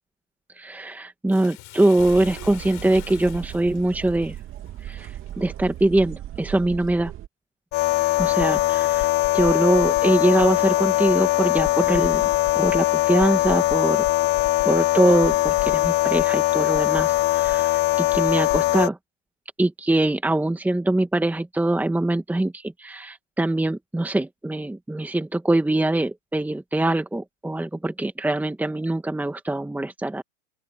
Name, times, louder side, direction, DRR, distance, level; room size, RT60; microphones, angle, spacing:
voice 1, 0.6-4.4 4.8-7.1 8.2-12.2 12.6-14.0 14.7-19.0 19.6-30.2, right 2 dB, 5° right, 1.9 m, -23 dB
Bathtub (filling or washing), 1.3-5.8 6.4-6.5, left 22 dB, 45° left, 6.7 m, -45 dB
sound 1, 2.0-7.3, right 12 dB, 35° right, 2.5 m, -37 dB
sound 2, 7.7-18.9, left 18 dB, 30° left, 0.5 m, -21 dB
open air
hypercardioid pair, 110°, 38 cm